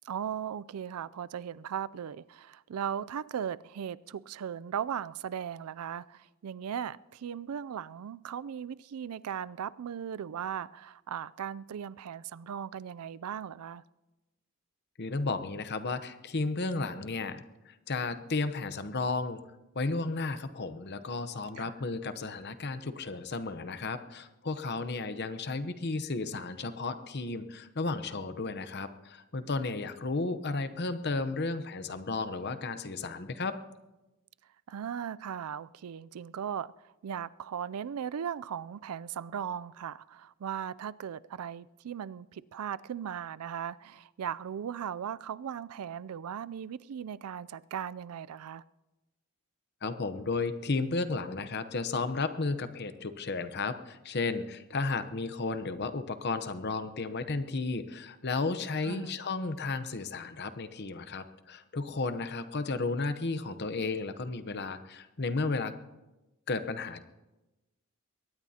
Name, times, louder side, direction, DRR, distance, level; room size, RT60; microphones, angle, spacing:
voice 1, 0.0-13.8 21.6-21.7 34.7-48.6 58.8-59.1, right 8 dB, 90° right, 0.4 m, -38 dB
voice 2, 15.0-19.4 19.7-33.6 49.8-65.7 66.5-67.0, left 3 dB, 50° left, 0.8 m, -33 dB
22.0 x 18.5 x 2.8 m
head